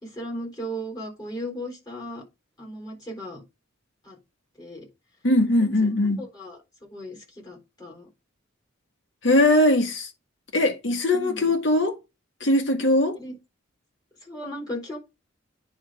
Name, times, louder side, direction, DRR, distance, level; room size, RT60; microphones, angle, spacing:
voice 1, 0.0-2.2 2.6-3.4 4.0-4.2 4.6-4.9 5.8-5.9 6.2-8.1 11.1-11.5 13.2-13.3 14.2-15.0, equal, 20° left, 3.9 m, -36 dB
voice 2, 5.2-6.3 9.2-10.1 10.5-12.0 12.4-13.2, left 1 dB, 60° left, 2.0 m, -20 dB
9.8 x 3.7 x 4.9 m
head